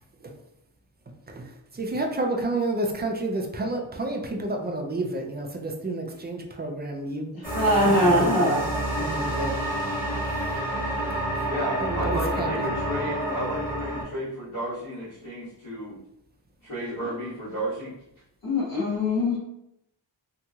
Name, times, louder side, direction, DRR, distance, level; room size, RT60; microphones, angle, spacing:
voice 1, 1.3-7.3 7.8-8.6 9.0-9.6 11.1-11.5 11.8-12.5, right 2 dB, 25° right, 2 dB, 0.3 m, -30 dB
voice 2, 7.3-8.6 18.4-19.4, left 1 dB, 50° left, -5 dB, 1.0 m, -22 dB
sound 1, 7.4-14.0, right 1 dB, 20° left, 1.2 m, -28 dB
voice 3, 11.5-16.0 16.6-17.9, equal, 85° left, -12 dB, 1.3 m, -33 dB
2.8 x 2.7 x 2.3 m, 0.80 s
wide cardioid pair, 120°, 46 cm